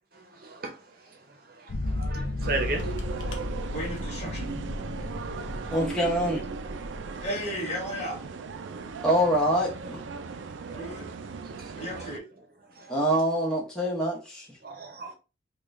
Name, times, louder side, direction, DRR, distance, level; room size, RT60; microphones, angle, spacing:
voice 1, 0.1-0.8 1.6-3.9 5.6-5.7 8.8-9.0 10.2-10.9 11.4-12.1 12.7-12.9 14.6-15.1, right 2 dB, 50° right, 0.7 m, -37 dB
sound 1, 1.7-7.3, left 2 dB, 80° left, 0.6 m, -34 dB
sound 2, 2.4-12.2, right 5 dB, 80° right, 0.4 m, -38 dB
voice 2, 3.7-4.5 7.2-8.2 10.8-11.1 11.8-12.2, equal, 35° left, 1.3 m, -34 dB
voice 3, 5.7-6.4 9.0-10.0 12.9-14.5, equal, 5° left, 0.7 m, -25 dB
3.7 x 2.3 x 3.1 m
head